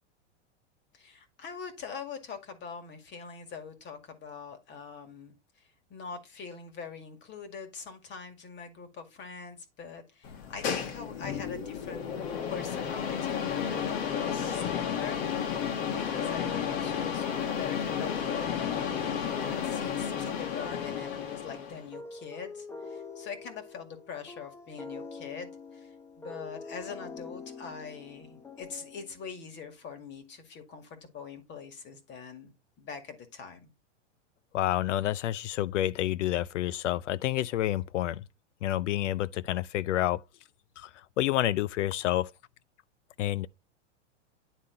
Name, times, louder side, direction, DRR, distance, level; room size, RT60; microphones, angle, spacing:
voice 1, 0.9-12.2 12.5-33.7, left 6 dB, 30° left, 2.0 m, -43 dB
sound 1, 10.2-21.9, left 8 dB, 55° left, 1.7 m, -32 dB
sound 2, 12.2-29.4, left 4 dB, 10° left, 0.6 m, -45 dB
voice 2, 34.5-38.3 38.6-40.2 40.8-40.9 41.2-42.3 43.2-43.5, left 13 dB, 80° left, 0.6 m, -29 dB
10.0 x 3.7 x 3.8 m
hypercardioid pair, 120°, 36 cm